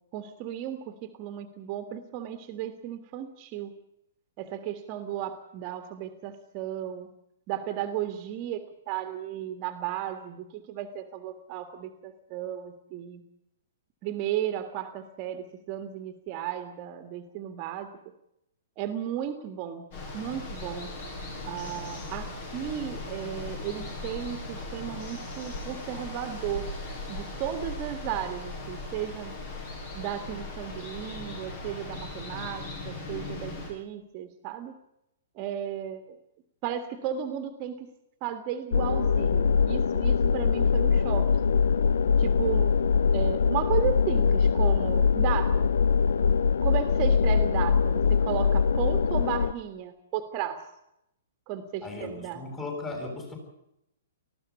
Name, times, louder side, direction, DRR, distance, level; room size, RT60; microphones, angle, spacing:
voice 1, 0.1-3.7 4.4-7.1 7.5-13.2 14.0-17.9 18.8-19.9 20.1-21.0 21.5-26.7 27.1-29.4 29.9-34.8 35.4-36.2 36.6-37.9 38.2-41.3 42.2-42.7 43.1-45.7 46.6-50.7 51.5-52.4, right 10 dB, 35° right, 8 dB, 1.8 m, -34 dB
Water, 19.9-33.7, left 2 dB, 45° left, 7.4 m, -38 dB
sound 1, 38.7-49.5, left 6 dB, 65° left, 0.7 m, -23 dB
voice 2, 51.8-53.4, left 3 dB, 20° left, 3 dB, 7.4 m, -37 dB
19.5 x 15.0 x 9.6 m, 0.81 s
figure-of-eight pair, 115°, 0 cm